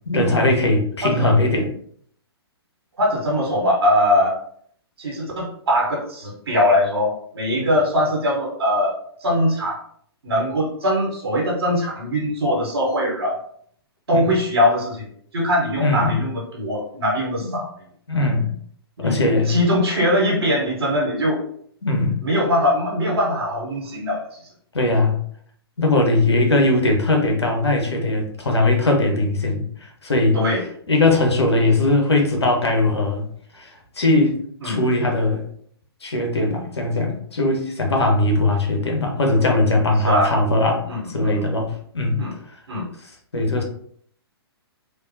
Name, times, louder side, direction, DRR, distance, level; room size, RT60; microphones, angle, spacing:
voice 1, 0.1-1.7 7.5-7.7 14.1-14.3 15.8-16.2 17.4-17.5 18.1-18.5 19.0-19.6 21.8-22.2 24.7-25.2 25.8-30.4 30.9-33.3 33.5-34.4 34.6-35.5 36.0-42.2 43.0-43.6, left 2 dB, 85° left, 1 dB, 1.0 m, -20 dB
voice 2, 3.0-4.4 5.0-9.8 10.2-13.4 14.1-15.1 15.3-17.7 19.0-21.4 22.2-24.2 30.3-30.6 34.6-34.8 40.0-40.3 40.9-41.4 42.2-42.3 42.7-42.9, left 1 dB, 75° right, -3 dB, 1.2 m, -21 dB
3.4 x 2.5 x 2.7 m, 0.62 s
hypercardioid pair, 125°, 13 cm